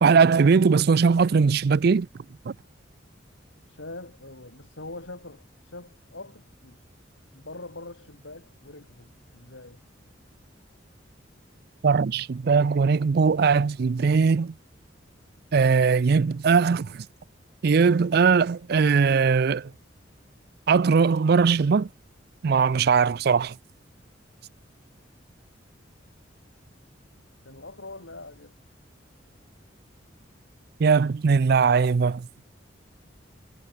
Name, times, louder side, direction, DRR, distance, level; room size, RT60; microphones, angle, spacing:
voice 1, 0.0-2.1 2.5-2.6 11.8-14.5 15.5-17.1 17.6-19.7 20.7-21.9 22.4-23.5 30.8-32.3, right 5 dB, 55° right, 0.4 m, -20 dB
voice 2, 3.7-6.8 7.3-9.8 27.4-28.5, left 2 dB, 90° left, 5.1 m, -43 dB
head